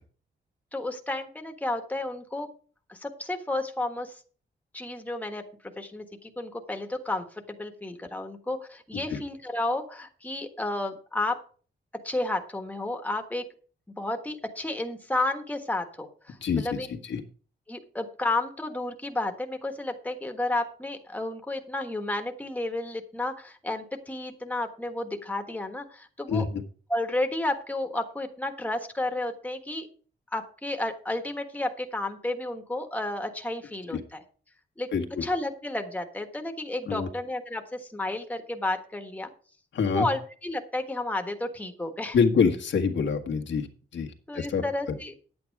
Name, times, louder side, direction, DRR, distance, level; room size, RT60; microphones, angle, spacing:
voice 1, 0.7-2.5 2.9-4.2 4.7-5.4 5.8-11.4 12.0-13.4 14.0-16.9 17.7-26.4 26.9-29.9 30.3-34.2 34.8-34.9 35.2-39.3 39.9-42.2 44.3-45.1, left 2 dB, 10° left, 5 dB, 1.4 m, -32 dB
voice 2, 16.4-17.2 26.3-26.6 33.9-34.0 34.9-35.2 36.9-37.1 39.7-40.1 42.1-43.7 43.9-44.1 44.3-44.6, left 5 dB, 90° left, 3 dB, 1.6 m, -26 dB
10.5 x 8.7 x 4.7 m, 0.41 s
wide cardioid pair, 125°, 18 cm